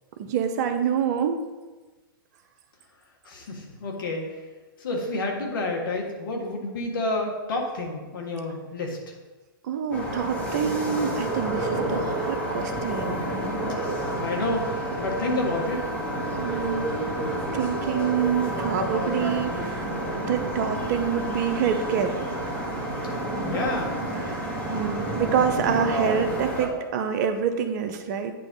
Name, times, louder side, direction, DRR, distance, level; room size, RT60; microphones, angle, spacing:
voice 1, 0.2-1.4 9.6-13.3 16.4-16.9 17.5-19.9 20.3-22.2 24.2-28.3, right 7 dB, 50° right, 8 dB, 0.7 m, -26 dB
voice 2, 3.2-4.2 4.8-9.1 14.2-15.8 23.4-24.0, left 2 dB, 65° left, 0 dB, 1.6 m, -29 dB
sound 1, 9.9-26.7, right 1 dB, 10° left, 1.7 m, -29 dB
9.1 x 3.1 x 5.1 m, 1.2 s
hypercardioid pair, 110°, 12 cm